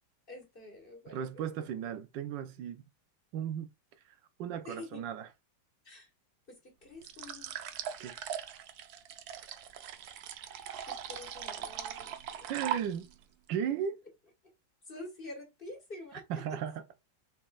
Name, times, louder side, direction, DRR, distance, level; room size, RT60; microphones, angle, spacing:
voice 1, 0.3-1.6 4.6-5.0 5.8-6.1 6.5-7.5 10.9-12.5 14.8-16.4, left 2 dB, 30° left, 1.6 m, -48 dB
voice 2, 1.1-2.9 3.3-3.7 4.4-5.3 8.0-8.2 12.5-13.1 13.5-14.0 16.3-16.8, right 8 dB, 85° right, 1.4 m, -36 dB
sound 1, 7.0-13.2, right 9 dB, 70° right, 1.1 m, -40 dB
6.1 x 3.7 x 2.4 m
omnidirectional pair, 1.9 m